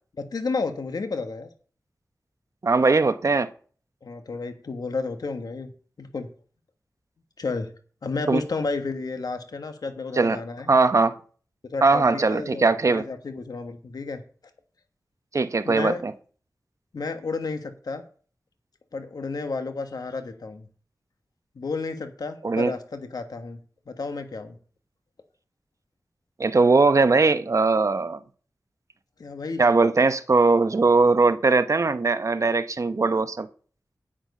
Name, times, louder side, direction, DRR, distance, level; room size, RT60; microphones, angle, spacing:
voice 1, 0.2-1.5 4.0-5.7 6.0-6.3 7.4-7.7 8.0-10.7 11.7-14.2 15.6-16.0 16.9-18.0 18.9-20.7 21.5-23.6 23.9-24.6 29.2-29.6, left 4 dB, 80° left, 1.4 m, -31 dB
voice 2, 2.6-3.5 8.3-8.4 10.2-10.4 10.7-11.2 11.8-13.0 15.3-16.1 22.4-22.7 26.4-28.2 29.6-33.5, right 3 dB, 55° right, 0.9 m, -20 dB
9.2 x 8.8 x 5.4 m
wide cardioid pair, 85°, 7 cm